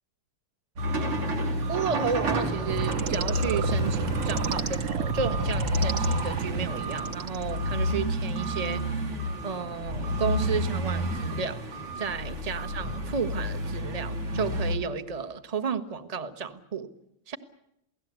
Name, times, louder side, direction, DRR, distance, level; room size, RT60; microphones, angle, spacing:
sound 1, 0.8-14.8, equal, 85° right, 3.9 m, -30 dB
voice 1, 1.7-9.1 9.4-11.6 12.0-16.9 17.3-17.4, right 6 dB, 20° right, 9 dB, 1.1 m, -32 dB
sound 2, 2.7-8.7, right 5 dB, 45° right, 1.2 m, -31 dB
29.0 x 17.5 x 8.2 m, 0.80 s
omnidirectional pair, 2.4 m